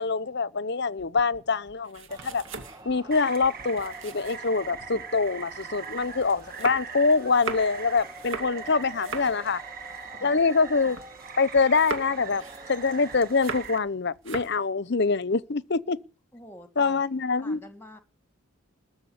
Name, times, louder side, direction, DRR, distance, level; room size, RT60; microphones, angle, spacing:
voice 1, 0.0-2.4 2.8-9.6 10.2-11.0 11.4-12.4 12.7-16.0 16.8-17.6, left 4 dB, 50° left, 0.7 m, -25 dB
sound 1, 1.0-5.0 5.5-11.3 11.5-13.9 14.1-14.6, right 3 dB, 60° right, 2.4 m, -40 dB
sound 2, 2.1-13.7, equal, 20° right, 2.1 m, -47 dB
Rain, 3.1-13.8, right 7 dB, 40° right, 1.4 m, -42 dB
voice 2, 16.3-17.1 17.4-18.0, left 1 dB, 10° left, 1.9 m, -47 dB
20.5 x 7.0 x 8.7 m
head